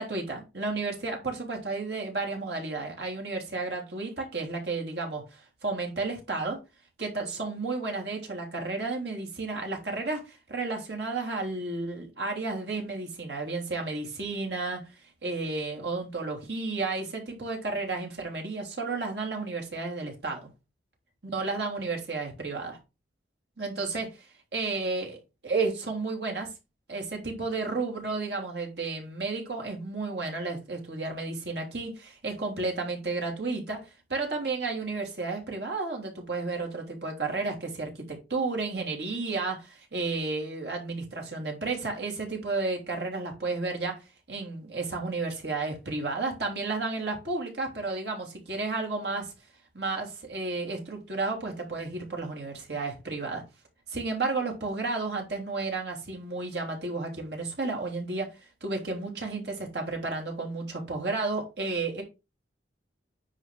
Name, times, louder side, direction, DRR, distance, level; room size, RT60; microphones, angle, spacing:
voice 1, 0.0-6.6 7.0-14.8 15.2-20.5 21.3-22.8 23.6-24.1 24.5-25.2 25.4-26.5 26.9-44.0 44.3-49.3 49.7-53.4 53.9-58.3 58.6-62.0, right 3 dB, 65° right, 3.1 m, -32 dB
10.0 x 4.1 x 4.7 m
head